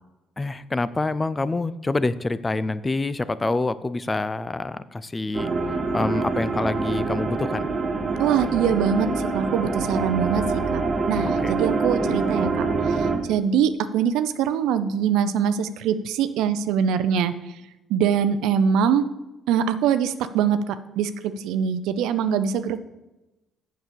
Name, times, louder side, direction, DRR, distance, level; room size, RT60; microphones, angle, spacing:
voice 1, 0.4-5.5 5.9-7.7 11.4-11.5, left 2 dB, 20° left, 15 dB, 0.5 m, -26 dB
sound 1, 5.3-13.2, right 4 dB, 35° right, 1.6 m, -25 dB
voice 2, 8.2-10.8 11.1-17.3 17.9-19.0 19.5-22.8, right 8 dB, 85° right, 12 dB, 0.5 m, -23 dB
7.3 x 6.1 x 6.8 m, 1.0 s
cardioid pair, 85°, 0 cm